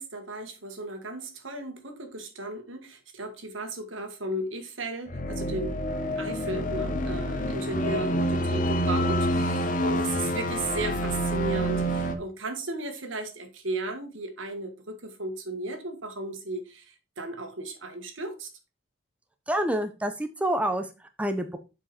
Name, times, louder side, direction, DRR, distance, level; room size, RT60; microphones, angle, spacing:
voice 1, 0.0-5.8 6.2-18.5, right 2 dB, 75° right, 1.7 m, -35 dB
sound 1, 5.1-12.1, equal, 40° left, 0.9 m, -27 dB
voice 2, 19.5-21.6, right 1 dB, 5° right, 0.6 m, -28 dB
7.4 x 5.1 x 4.2 m
head